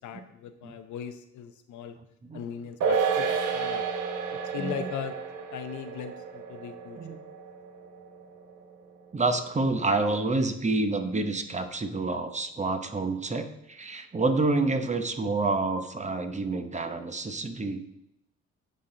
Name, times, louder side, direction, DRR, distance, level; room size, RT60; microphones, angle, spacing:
voice 1, 0.0-1.9 2.3-3.8 4.5-5.2 5.5-7.2, left 7 dB, 75° left, 9 dB, 0.7 m, -38 dB
sound 1, 2.8-9.5 9.8-9.9, right 6 dB, 75° right, 1.1 m, -31 dB
voice 2, 4.6-4.9 6.9-7.2 9.1-17.8, right 3 dB, 25° right, 7 dB, 0.8 m, -28 dB
10.0 x 4.2 x 3.8 m, 0.81 s
cardioid pair, 90°, 30 cm